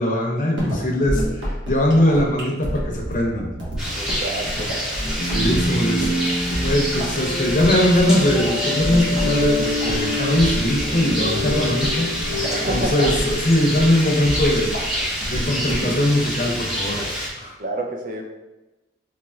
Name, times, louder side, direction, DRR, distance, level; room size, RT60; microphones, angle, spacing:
voice 1, 0.0-3.5 5.2-14.8 15.2-17.0 17.4-17.5, left 1 dB, 40° left, 0 dB, 0.6 m, -21 dB
sound 1, 0.6-16.0, equal, 80° right, 1.2 m, -29 dB
Rain, 3.8-17.3, equal, 5° right, 0.6 m, -27 dB
voice 2, 3.9-4.7 12.5-13.1 17.6-18.2, right 1 dB, 45° right, 2 dB, 0.5 m, -28 dB
sound 2, 5.2-14.1, left 2 dB, 90° left, 0.7 m, -28 dB
4.2 x 3.0 x 2.3 m, 1.0 s
head